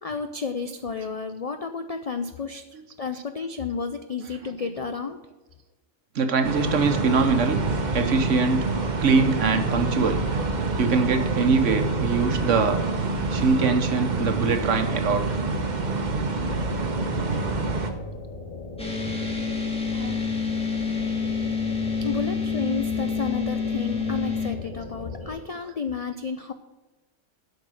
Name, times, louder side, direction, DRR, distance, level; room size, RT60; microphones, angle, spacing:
voice 1, 0.0-2.6 3.0-5.2 22.0-26.5, left 5 dB, 60° left, 8 dB, 0.3 m, -31 dB
voice 2, 4.2-4.7 6.1-7.6 7.9-8.7 9.0-10.2 10.8-12.8 13.3-15.4 19.9-20.2 25.4-25.7, right 4 dB, 70° right, 7 dB, 1.4 m, -23 dB
sound 1, 6.4-17.9, right 3 dB, 40° right, 1.0 m, -26 dB
sound 2, 16.5-25.3, left 2 dB, 85° left, 3.2 m, -38 dB
sound 3, 18.8-24.5, left 5 dB, 5° left, 1.5 m, -28 dB
8.1 x 5.9 x 7.5 m, 1.1 s
omnidirectional pair, 1.4 m